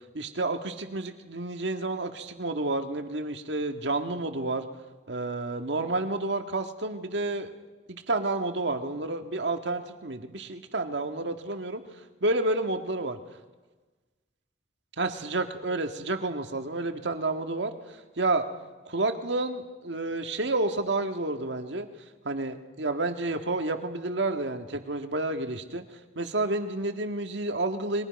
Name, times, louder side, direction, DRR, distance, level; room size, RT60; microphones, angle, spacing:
voice 1, 0.1-4.7 5.1-7.5 7.9-11.8 12.2-13.2 15.0-17.7 18.2-18.4 18.9-21.9 22.2-25.8 26.1-28.1, right 2 dB, 80° right, 6 dB, 1.7 m, -30 dB
30.0 x 22.5 x 5.3 m, 1.3 s
head